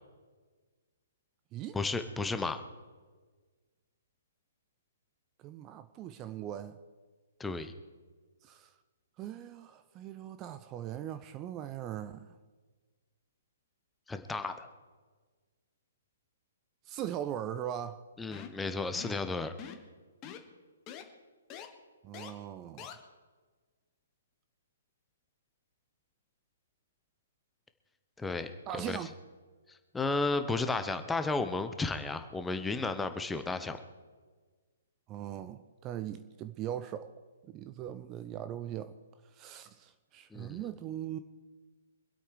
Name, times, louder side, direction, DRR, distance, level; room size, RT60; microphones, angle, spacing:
voice 1, 1.7-2.6 7.4-7.7 14.1-14.7 18.2-19.5 28.2-28.5 28.8-29.0 29.9-33.8 40.3-40.6, left 3 dB, 5° left, 0.9 m, -33 dB
voice 2, 5.4-6.8 8.4-8.7 9.2-12.4 16.9-18.0 22.0-23.0 28.7-29.1 35.1-37.1 37.4-39.0 39.3-41.2, right 11 dB, 25° right, 0.6 m, -40 dB
sound 1, 18.3-18.6 18.9-19.2 19.6-19.9 20.2-20.4 20.9-21.0 21.5-21.7 22.1-22.3 22.8-22.9, left 9 dB, 25° left, 1.5 m, -44 dB
25.0 x 8.4 x 4.8 m
figure-of-eight pair, 125°, 0 cm